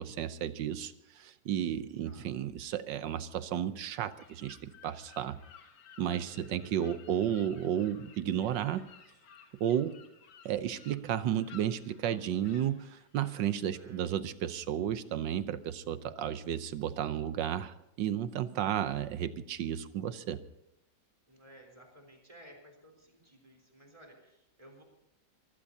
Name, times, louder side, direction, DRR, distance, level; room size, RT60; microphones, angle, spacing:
voice 1, 0.0-5.4 6.0-8.9 9.6-10.0 10.4-20.4, right 10 dB, 75° right, 13 dB, 1.4 m, -33 dB
sound 1, 3.8-14.2, left 7 dB, 90° left, 2.1 m, -57 dB
voice 2, 6.1-6.7 13.5-14.0 21.3-24.8, right 1 dB, 15° right, 1 dB, 3.8 m, -57 dB
25.0 x 15.5 x 2.8 m, 0.83 s
omnidirectional pair, 2.0 m